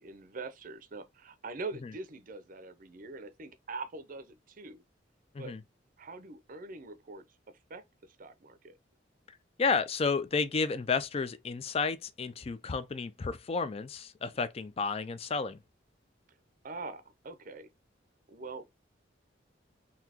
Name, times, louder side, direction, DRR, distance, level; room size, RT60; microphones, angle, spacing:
voice 1, 0.0-4.8 5.4-5.6 6.0-7.2 7.7-8.8 16.6-17.7 18.3-18.8, right 3 dB, 50° right, 0.6 m, -43 dB
voice 2, 9.6-15.6, left 4 dB, 35° left, 0.4 m, -31 dB
4.0 x 2.8 x 2.8 m
head